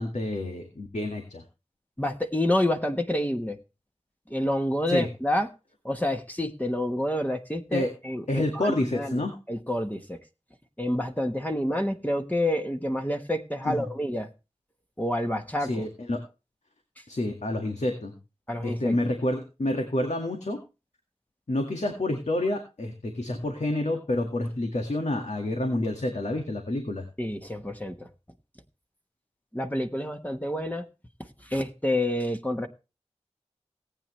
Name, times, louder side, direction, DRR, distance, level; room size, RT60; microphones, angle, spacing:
voice 1, 0.0-1.4 4.9-5.1 7.7-7.9 8.3-9.4 13.7-13.9 15.7-16.2 17.1-18.2 18.6-20.6 21.5-27.1, left 1 dB, 85° left, 4 dB, 2.0 m, -28 dB
voice 2, 2.0-3.6 4.3-5.5 5.8-9.2 9.5-10.2 10.8-14.3 15.0-15.7 18.5-19.0 27.2-27.9 29.5-30.8 31.5-32.7, left 1 dB, 15° left, 4 dB, 1.3 m, -28 dB
18.5 x 8.9 x 3.2 m, 0.30 s
wide cardioid pair, 50°, 11 cm